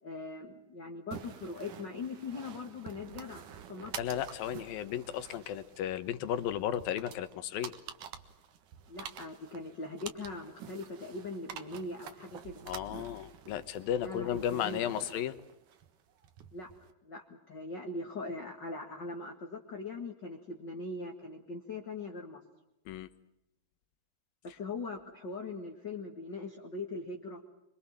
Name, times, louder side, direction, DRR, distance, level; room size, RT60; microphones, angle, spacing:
voice 1, 0.0-3.4 3.7-3.9 8.9-12.6 14.0-14.8 16.5-16.7 17.0-22.4 24.4-27.4, left 3 dB, 35° left, 2 dB, 2.1 m, -41 dB
sound 1, 1.1-16.9, right 8 dB, 65° right, 2.9 m, -49 dB
voice 2, 4.0-7.7 12.7-15.4 22.9-23.1, left 10 dB, 75° left, 12 dB, 2.9 m, -34 dB
25.5 x 24.5 x 7.4 m, 0.86 s
omnidirectional pair, 4.3 m